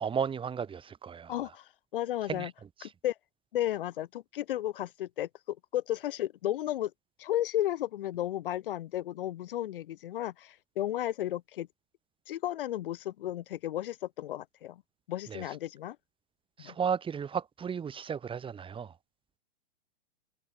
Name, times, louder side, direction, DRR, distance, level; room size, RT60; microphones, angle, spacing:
voice 1, 0.0-1.4 2.3-2.5 2.8-2.9 15.3-15.4 16.6-18.9, right 7 dB, 15° right, 3.2 m, -34 dB
voice 2, 1.3-2.5 2.8-3.1 3.5-6.9 7.2-11.7 12.3-14.8 15.1-16.0 16.6-16.7, left 13 dB, 65° left, 1.7 m, -34 dB
hypercardioid pair, 115°, 29 cm